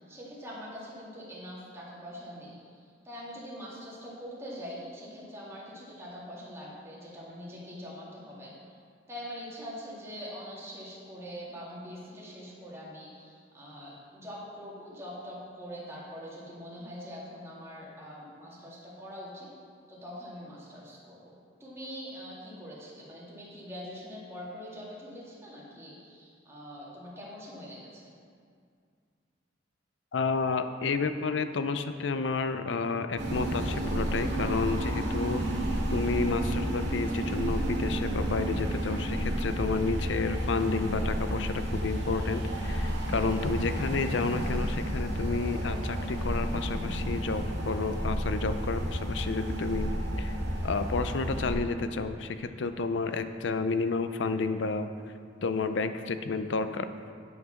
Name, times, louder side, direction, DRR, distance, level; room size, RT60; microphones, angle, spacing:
voice 1, 0.1-2.6 3.0-8.5 9.1-19.5 19.9-21.3 21.6-28.1, equal, 15° right, -6 dB, 2.1 m, -43 dB
voice 2, 30.1-35.4 35.9-49.9 50.2-50.3 50.6-54.9 55.4-56.9, left 4 dB, 70° left, 10 dB, 0.5 m, -31 dB
sound 1, 33.2-51.5, equal, 60° right, 2.1 m, -31 dB
9.3 x 5.9 x 5.7 m, 2.2 s
head